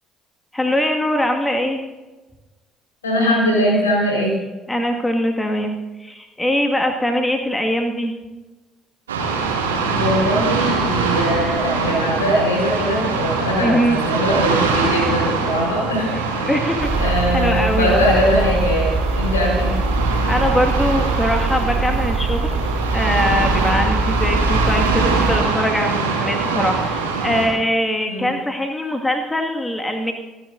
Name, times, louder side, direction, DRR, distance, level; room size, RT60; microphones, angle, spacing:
voice 1, 0.5-1.8 4.7-8.1 13.6-14.0 16.1-17.9 20.3-22.5 22.9-30.1, equal, 15° left, 3 dB, 2.0 m, -22 dB
voice 2, 3.0-4.4 9.9-16.6 17.0-19.8 28.1-28.4, equal, 80° left, -2 dB, 4.7 m, -21 dB
sound 1, 9.1-27.5, right 4 dB, 80° right, 2.3 m, -23 dB
sound 2, 16.8-25.4, right 2 dB, 30° right, 4.0 m, -22 dB
28.5 x 10.0 x 2.7 m, 1.2 s
figure-of-eight pair, 50°, 0 cm